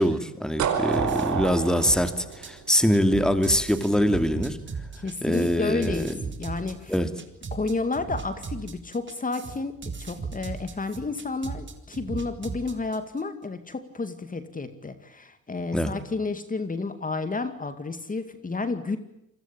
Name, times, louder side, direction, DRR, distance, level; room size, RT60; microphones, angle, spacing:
voice 1, 0.0-4.6 5.2-6.1 6.9-7.1 15.7-15.9, equal, ahead, 9 dB, 2.5 m, -23 dB
sound 1, 0.6-3.4, right 6 dB, 70° right, 4.9 m, -28 dB
sound 2, 0.9-13.2, right 5 dB, 40° right, 4.1 m, -37 dB
voice 2, 4.9-6.1 6.4-6.9 7.5-19.0, left 3 dB, 25° left, 10 dB, 2.3 m, -31 dB
28.5 x 21.5 x 8.8 m, 0.78 s
cardioid pair, 90°, 30 cm